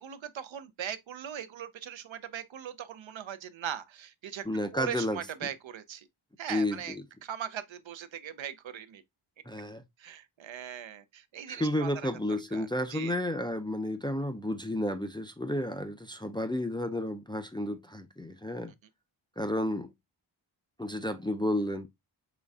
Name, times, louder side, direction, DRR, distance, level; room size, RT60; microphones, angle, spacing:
voice 1, 0.0-4.4 4.7-6.1 6.4-7.0 7.2-9.0 10.0-12.1 12.5-13.1, right 9 dB, 70° right, 0.6 m, -40 dB
voice 2, 4.4-5.2 6.5-7.0 9.5-9.8 11.5-18.7 19.4-19.9 20.8-21.9, left 1 dB, 10° left, 0.4 m, -32 dB
3.9 x 3.1 x 2.3 m
cardioid pair, 50°, 48 cm